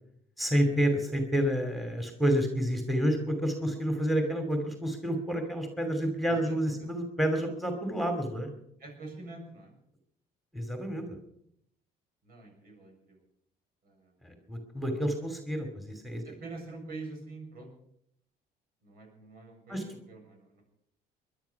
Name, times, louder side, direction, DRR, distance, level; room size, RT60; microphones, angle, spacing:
voice 1, 0.4-8.5 10.5-11.2 14.2-16.2 19.7-19.8, equal, ahead, 5 dB, 2.6 m, -29 dB
voice 2, 6.3-6.9 8.8-9.8 12.2-13.2 13.8-14.5 16.2-17.7 18.8-20.6, right 3 dB, 60° right, 2 dB, 7.2 m, -46 dB
20.5 x 11.5 x 5.8 m, 0.73 s
cardioid pair, 110°, 17 cm